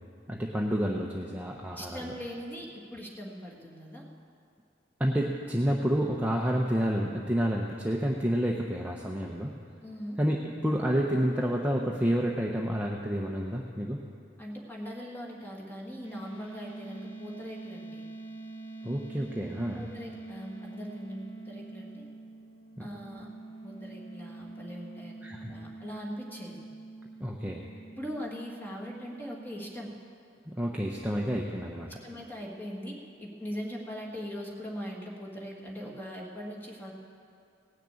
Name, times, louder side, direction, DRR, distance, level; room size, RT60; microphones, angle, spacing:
voice 1, 0.3-2.1 5.0-9.5 10.2-14.0 18.8-19.8 22.8-22.9 25.2-25.5 27.2-27.7 30.5-31.9, equal, 10° right, -1 dB, 0.7 m, -29 dB
voice 2, 1.7-4.0 9.8-10.2 14.4-18.0 19.7-22.0 22.8-23.3 23.6-25.2 25.5-26.6 28.0-29.9 31.9-36.9, equal, 10° left, -2 dB, 1.8 m, -41 dB
sound 1, 16.0-29.9, right 2 dB, 30° left, 1.4 m, -45 dB
17.5 x 6.6 x 8.8 m, 2.4 s
head